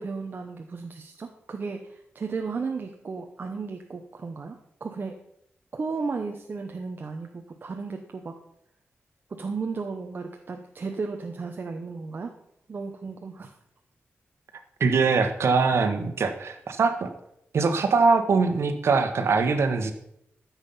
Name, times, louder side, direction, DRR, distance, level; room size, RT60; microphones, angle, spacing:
voice 1, 0.0-4.5 4.8-5.2 5.7-8.4 9.3-12.3 12.7-13.5, right 4 dB, 45° right, 4 dB, 1.0 m, -34 dB
voice 2, 14.8-17.1 17.5-19.9, right 4 dB, 75° right, 7 dB, 1.4 m, -22 dB
14.0 x 7.4 x 5.6 m, 0.77 s
wide cardioid pair, 135°, 4 cm